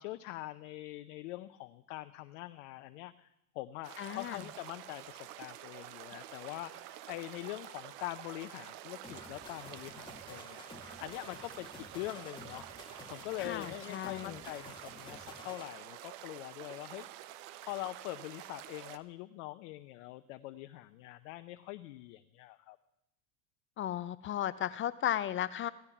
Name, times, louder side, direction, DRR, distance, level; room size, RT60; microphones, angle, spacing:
voice 1, 0.0-3.3 3.5-10.6 11.0-12.7 13.1-17.1 17.6-22.8, left 17 dB, 60° left, 10 dB, 0.8 m, -43 dB
sound 1, 3.8-19.0, right 13 dB, 55° right, 1.1 m, -49 dB
voice 2, 4.0-4.4 13.4-14.4 23.8-25.7, left 11 dB, 30° left, 15 dB, 0.5 m, -35 dB
sound 2, 9.0-15.7, left 3 dB, 10° left, 2.2 m, -52 dB
16.5 x 13.5 x 5.9 m, 0.82 s
hypercardioid pair, 85°, 45 cm